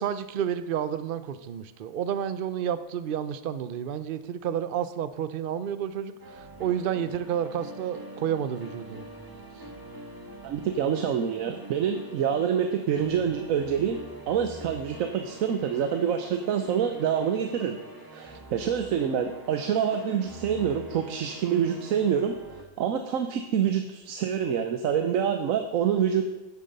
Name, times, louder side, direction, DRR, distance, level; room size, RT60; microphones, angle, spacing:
voice 1, 0.0-9.1, right 9 dB, 50° right, 13 dB, 0.7 m, -30 dB
sound 1, 6.2-22.6, right 1 dB, 15° right, 1.3 m, -45 dB
voice 2, 10.4-14.0 14.3-17.8 18.1-22.4 22.8-26.2, right 8 dB, 80° right, 7 dB, 1.1 m, -26 dB
9.9 x 8.6 x 5.3 m, 1.1 s
omnidirectional pair, 1.4 m